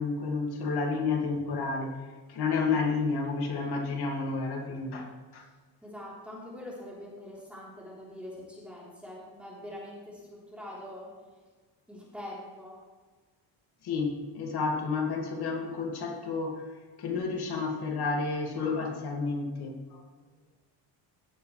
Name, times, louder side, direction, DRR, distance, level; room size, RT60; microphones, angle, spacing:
voice 1, 0.0-2.0 2.3-5.1 5.3-5.4 13.8-16.7 17.0-20.0, left 4 dB, 60° left, 1 dB, 2.4 m, -30 dB
voice 2, 5.8-11.1 11.9-12.8, left 1 dB, 5° right, -6 dB, 3.8 m, -44 dB
16.5 x 8.2 x 3.4 m, 1.3 s
cardioid pair, 135°, 44 cm